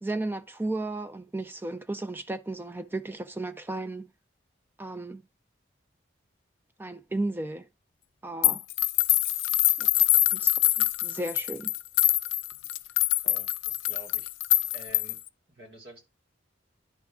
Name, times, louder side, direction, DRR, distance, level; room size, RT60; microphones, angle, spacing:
voice 1, 0.0-4.1 4.8-5.2 6.8-7.7 8.2-8.6 9.8-9.9 10.3-10.5 10.8-11.7, right 2 dB, 10° right, 0.3 m, -34 dB
sound 1, 8.4-15.3, left 15 dB, 85° left, 0.4 m, -24 dB
voice 2, 13.2-14.3 14.7-15.2 15.5-16.0, right 1 dB, 55° right, 2.6 m, -48 dB
10.5 x 3.6 x 3.5 m
head